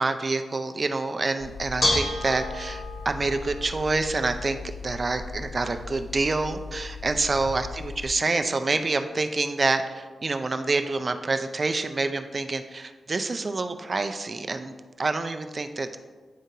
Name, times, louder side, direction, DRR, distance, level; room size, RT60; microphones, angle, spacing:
voice 1, 0.0-4.6 4.8-7.7 8.0-16.0, right 3 dB, 40° right, 8 dB, 0.4 m, -27 dB
Bell / Dishes pots and pans, 1.4-8.1, left 2 dB, 50° left, 1.1 m, -33 dB
10.0 x 3.7 x 2.7 m, 1.4 s
cardioid pair, 85°, 0 cm